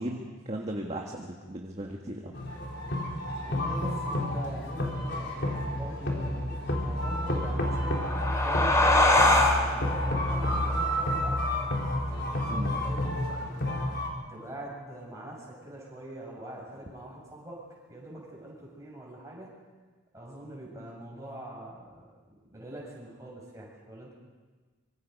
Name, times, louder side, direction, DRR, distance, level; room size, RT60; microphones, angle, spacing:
voice 1, 0.0-2.3 12.5-12.7, right 1 dB, 30° right, 0 dB, 1.7 m, -36 dB
sound 1, 2.3-14.1, left 1 dB, 55° left, 4.0 m, -30 dB
voice 2, 3.3-11.5 12.1-13.8 14.3-17.6 17.9-19.5 20.1-22.0 22.5-24.1, right 1 dB, 15° right, -4 dB, 7.4 m, -43 dB
sound 2, 7.6-12.7, left 2 dB, 15° left, 2.2 m, -26 dB
25.5 x 24.0 x 5.4 m, 1.4 s
head